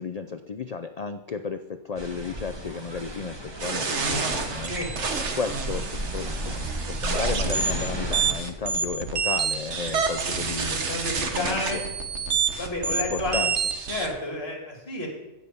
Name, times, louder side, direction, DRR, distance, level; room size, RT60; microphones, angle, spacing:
voice 1, 0.0-4.7 5.3-6.5 6.9-10.8 11.2-11.8 12.9-13.5, left 5 dB, 65° left, 9 dB, 0.3 m, -33 dB
sound 1, 2.0-8.3, right 1 dB, 20° right, 1.3 m, -33 dB
sound 2, 3.6-14.1, right 5 dB, 60° right, 1.4 m, -28 dB
voice 2, 10.7-11.8 12.6-13.4 13.9-15.1, left 2 dB, 50° left, 0 dB, 3.1 m, -31 dB
15.5 x 5.9 x 6.8 m, 1.0 s
omnidirectional pair, 1.4 m